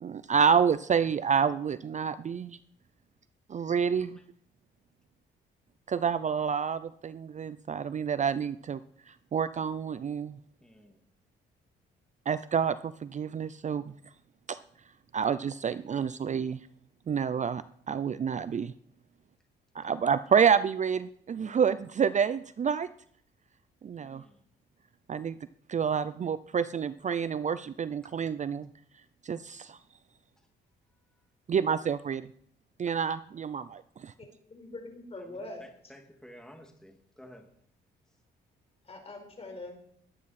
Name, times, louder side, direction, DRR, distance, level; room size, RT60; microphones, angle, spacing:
voice 1, 0.0-2.6 3.5-4.2 5.9-8.8 9.3-10.4 12.3-13.9 14.5-14.6 15.1-16.6 17.1-18.7 19.7-22.9 23.8-24.2 25.1-25.4 25.7-28.7 29.2-29.8 31.5-32.3 32.8-34.1, right 7 dB, 35° right, 14 dB, 0.5 m, -28 dB
voice 2, 3.9-4.3 10.6-11.0 23.9-24.4 28.0-28.1 30.4-30.5 31.1-31.2 32.9-33.0 35.2-37.5, equal, 5° left, 3 dB, 2.3 m, -54 dB
voice 3, 34.4-35.6 38.9-39.7, left 2 dB, 30° left, 3 dB, 4.6 m, -42 dB
21.0 x 9.5 x 4.3 m, 0.64 s
cardioid pair, 90°, 20 cm